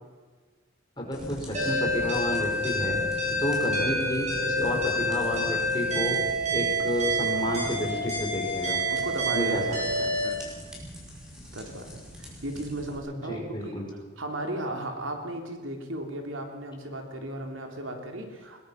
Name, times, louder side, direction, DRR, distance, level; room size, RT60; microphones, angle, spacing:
voice 1, 1.0-3.0 3.4-6.2 6.5-8.8 9.3-10.2 13.2-13.9, left 1 dB, 20° left, -1 dB, 5.2 m, -30 dB
sound 1, 1.1-13.0, equal, 5° right, 4.9 m, -43 dB
sound 2, 1.5-10.3, equal, 35° right, 7.3 m, -28 dB
voice 2, 8.9-9.7 10.2-10.5 11.5-13.9 14.2-18.6, right 1 dB, 85° right, 3 dB, 3.3 m, -35 dB
21.5 x 21.0 x 5.9 m, 1.4 s
head